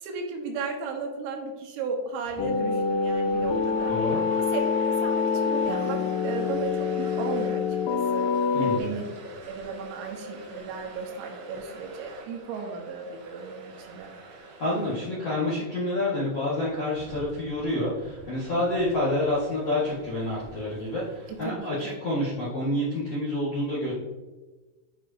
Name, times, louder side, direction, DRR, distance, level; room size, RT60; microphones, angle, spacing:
voice 1, 0.0-3.9 4.4-7.6 7.9-8.3 8.6-14.2 18.6-18.9 21.3-22.0, right 4 dB, 85° right, 2 dB, 3.7 m, -35 dB
sound 1, 2.2-21.6, right 2 dB, 70° right, 3.2 m, -46 dB
sound 2, 2.4-8.8, left 5 dB, 80° left, 2.8 m, -26 dB
voice 2, 3.9-4.2 8.5-8.9 14.4-23.9, left 1 dB, 60° left, -9 dB, 1.6 m, -28 dB
9.3 x 5.3 x 2.8 m, 1.2 s
omnidirectional pair, 5.7 m